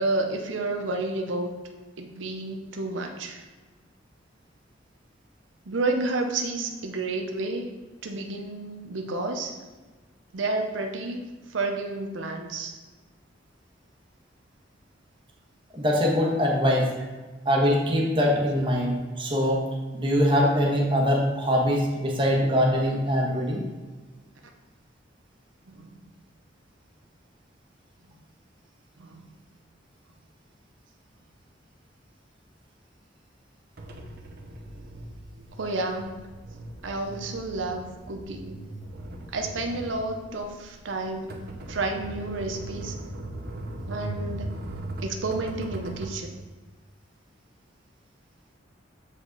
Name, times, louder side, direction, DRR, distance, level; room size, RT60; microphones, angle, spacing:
voice 1, 0.0-1.5 2.0-3.4 5.7-9.6 10.3-12.7 25.7-26.0 29.0-29.3 35.6-36.3 36.8-38.6 39.3-42.9 43.9-44.7 45.0-46.4, right 2 dB, 90° right, 3 dB, 0.7 m, -31 dB
voice 2, 15.7-16.9 17.4-19.6 19.9-23.6, equal, 25° right, -2 dB, 1.4 m, -23 dB
sound 1, 33.8-46.2, right 1 dB, 55° right, 1.0 m, -38 dB
7.3 x 5.0 x 3.9 m, 1.3 s
head